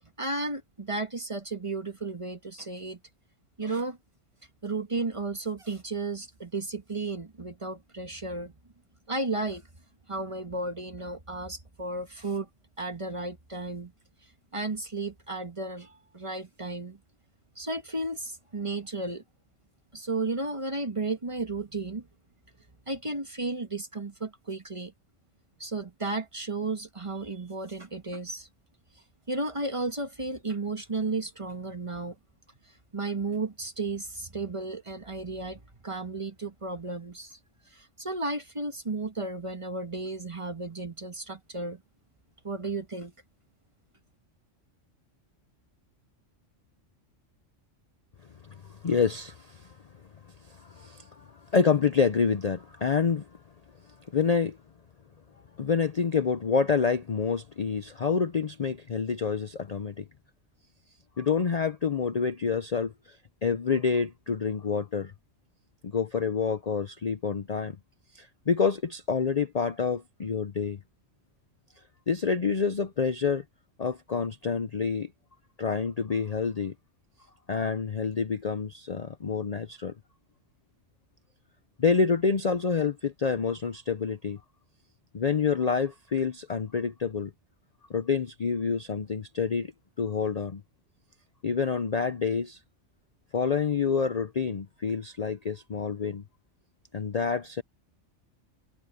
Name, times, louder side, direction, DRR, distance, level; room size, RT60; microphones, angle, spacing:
voice 1, 0.2-3.0 3.6-4.0 4.6-8.5 9.1-9.7 10.1-12.5 12.8-13.9 14.5-17.0 17.6-19.2 19.9-22.1 22.9-24.9 25.6-28.5 29.3-32.1 32.9-37.4 37.7-41.8 42.4-43.1, right 3 dB, 25° right, 1.4 m, -33 dB
voice 2, 48.6-49.7 50.5-53.3 54.1-54.6 55.6-60.0 61.2-63.2 63.4-65.1 65.8-67.8 68.1-70.8 72.1-73.4 73.8-75.1 75.6-76.7 77.5-79.9 81.8-84.4 85.1-87.3 87.9-89.7 90.0-90.6 91.4-92.6 93.3-96.2 96.9-97.6, left 5 dB, 40° left, 0.6 m, -27 dB
omnidirectional pair, 1.3 m